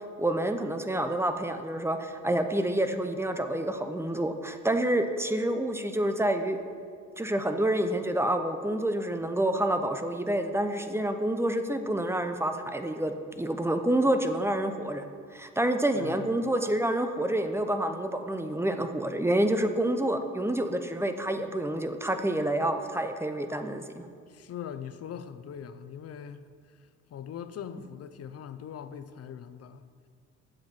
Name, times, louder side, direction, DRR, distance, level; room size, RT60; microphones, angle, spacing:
voice 1, 0.2-6.6 7.2-15.0 15.3-24.1, right 1 dB, 10° right, 0.7 m, -28 dB
voice 2, 15.9-16.3 24.3-26.4 27.1-29.9, left 8 dB, 55° left, 0.6 m, -41 dB
7.7 x 7.4 x 5.9 m
cardioid pair, 90°, 30 cm